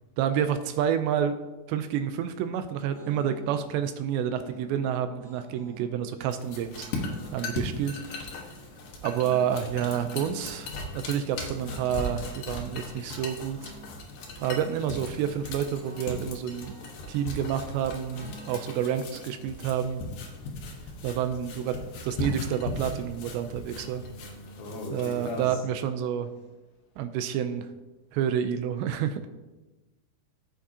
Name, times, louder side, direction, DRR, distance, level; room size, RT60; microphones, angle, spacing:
voice 1, 0.2-1.3 1.7-6.9 7.3-8.0 9.0-13.7 14.4-16.8 17.1-20.0 21.0-21.8 22.0-24.0 24.9-26.3 27.0-27.7 28.1-29.2, right 9 dB, 85° right, 9 dB, 2.7 m, -29 dB
sound 1, 2.9-3.6 4.4-5.9 6.9-8.3 9.0-10.5 11.4-12.7 13.5-13.9 14.1-15.0 15.8-17.5 18.0-21.1, right 1 dB, 55° right, 4.4 m, -51 dB
sound 2, 6.3-25.5, left 2 dB, 65° left, 2.3 m, -38 dB
voice 2, 24.6-25.6, left 3 dB, 85° left, 1 dB, 3.7 m, -37 dB
15.5 x 6.0 x 2.8 m, 1.1 s
omnidirectional pair, 5.2 m